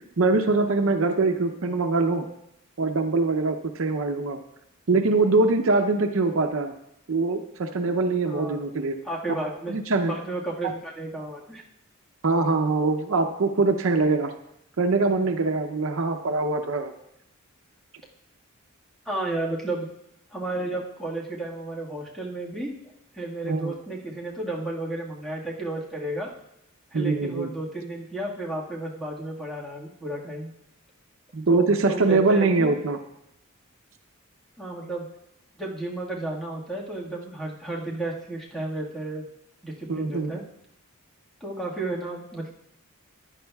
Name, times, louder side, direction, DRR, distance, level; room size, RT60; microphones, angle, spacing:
voice 1, 0.2-2.3 2.8-4.4 4.9-6.7 7.1-9.0 9.7-10.2 10.6-10.7 12.2-14.3 14.8-16.9 23.4-23.7 26.9-27.5 31.3-33.0 39.9-40.3, right 3 dB, 65° right, 6 dB, 0.6 m, -23 dB
voice 2, 8.3-8.6 9.0-9.7 10.1-11.6 19.0-19.9 20.3-22.7 23.1-26.3 26.9-30.5 31.5-32.7 34.6-35.1 35.6-39.2 39.6-40.4 41.4-42.5, right 2 dB, ahead, -4 dB, 1.6 m, -32 dB
14.5 x 10.5 x 2.3 m, 0.82 s
head